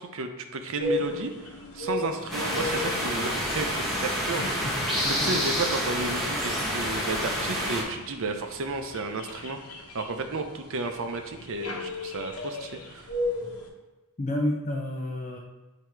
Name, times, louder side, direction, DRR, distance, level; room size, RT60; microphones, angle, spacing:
voice 1, 0.0-4.8 5.1-13.1, right 3 dB, 65° right, 6 dB, 0.6 m, -33 dB
sound 1, 0.8-13.7, left 1 dB, 90° left, 1.0 m, -36 dB
sound 2, 2.3-7.8, equal, ahead, 1.4 m, -28 dB
voice 2, 4.3-5.3 14.2-15.4, left 1 dB, 35° left, -2 dB, 0.6 m, -31 dB
8.5 x 2.9 x 4.5 m, 1.1 s
head